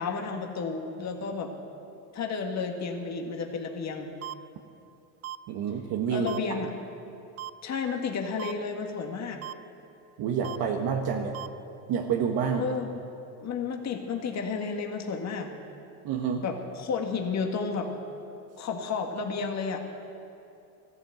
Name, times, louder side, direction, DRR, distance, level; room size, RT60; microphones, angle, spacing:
voice 1, 0.0-1.5 2.1-4.1 6.1-6.7 7.6-9.4 12.6-12.9 13.4-15.5 16.4-17.9 18.6-19.8, left 5 dB, 40° left, 3 dB, 1.9 m, -32 dB
sound 1, 4.2-4.3 5.2-5.4 6.3-6.4 7.4-7.5 8.4-8.5 9.4-9.5 10.4-10.6 11.3-11.5, right 12 dB, 35° right, 0.5 m, -37 dB
voice 2, 5.5-6.3 10.2-11.3 11.9-12.7 16.0-16.4, right 7 dB, 60° right, 2 dB, 1.5 m, -28 dB
14.5 x 12.5 x 8.0 m, 2.7 s
supercardioid pair, 95°, 43 cm